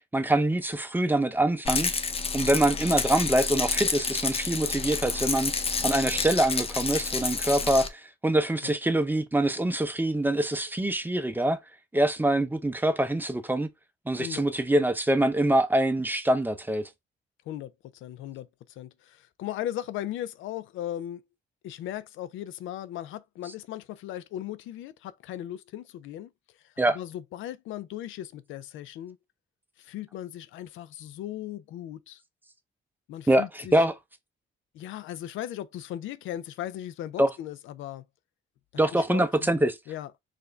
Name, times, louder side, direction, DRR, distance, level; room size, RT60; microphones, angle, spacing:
voice 1, 0.1-1.9 2.3-5.5 5.8-11.6 11.9-13.7 14.1-16.9 26.8-27.0 33.3-33.9 37.2-37.3 38.8-39.7, right 1 dB, 10° right, 0.6 m, -24 dB
Rattle, 1.6-7.9, left 4 dB, 30° left, 0.7 m, -29 dB
voice 2, 17.5-18.5 18.8-21.2 21.6-26.3 26.6-29.2 29.8-32.2 33.1-33.9 34.7-38.1 38.8-39.6 39.9-40.1, left 12 dB, 80° left, 0.4 m, -37 dB
4.6 x 2.6 x 3.2 m
cardioid pair, 90°, 20 cm